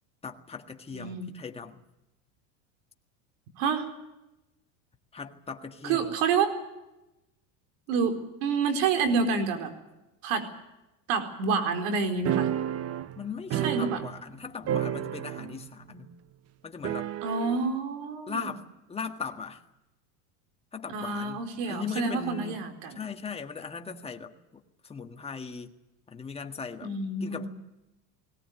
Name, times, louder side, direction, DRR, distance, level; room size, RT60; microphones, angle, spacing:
voice 1, 0.2-1.8 5.1-6.1 13.2-16.1 16.6-17.1 18.3-18.6 18.9-19.6 20.7-22.6 22.9-25.7 26.1-26.9 27.2-27.5, left 5 dB, 15° left, 1.8 m, -39 dB
voice 2, 0.9-1.3 3.6-3.9 5.8-6.5 7.9-9.7 10.2-10.4 11.1-12.5 13.5-14.0 17.2-18.5 20.9-23.0 26.8-27.5, right 5 dB, 70° right, 4.5 m, -28 dB
sound 1, 12.3-14.4 14.6-15.7 15.9-16.0 16.8-17.6, right 11 dB, 40° right, 1.0 m, -31 dB
21.0 x 18.0 x 9.4 m
supercardioid pair, 135°, 39 cm